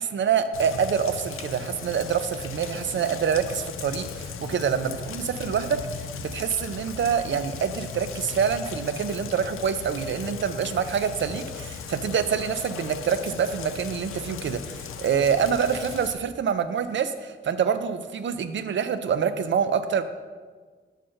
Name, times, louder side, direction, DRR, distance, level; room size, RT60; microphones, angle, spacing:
voice 1, 0.0-20.0, right 7 dB, 65° right, 11 dB, 0.5 m, -26 dB
Rain, 0.5-16.1, left 6 dB, 90° left, 0.4 m, -37 dB
6.3 x 5.0 x 4.4 m, 1.5 s
cardioid pair, 75°, 21 cm